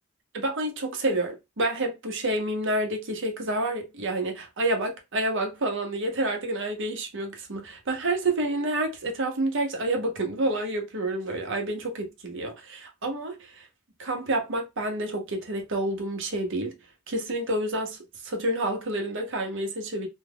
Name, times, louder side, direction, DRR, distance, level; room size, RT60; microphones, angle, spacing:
voice 1, 0.3-13.6 14.0-16.7 17.1-18.0 18.2-20.1, right 1 dB, 65° right, 0.9 m, -29 dB
2.8 x 2.3 x 3.4 m
head